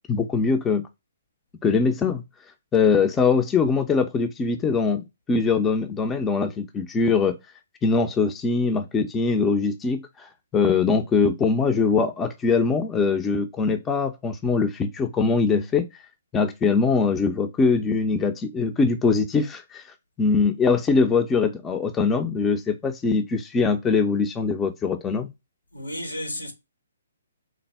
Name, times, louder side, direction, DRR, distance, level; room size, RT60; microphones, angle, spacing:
voice 1, 0.1-0.8 1.6-2.2 2.7-7.4 7.8-15.8 16.3-19.8 20.2-25.3, left 4 dB, 15° left, 0.4 m, -22 dB
voice 2, 25.7-26.5, left 1 dB, 80° left, 1.0 m, -32 dB
3.4 x 2.0 x 3.3 m
figure-of-eight pair, 130°, 0 cm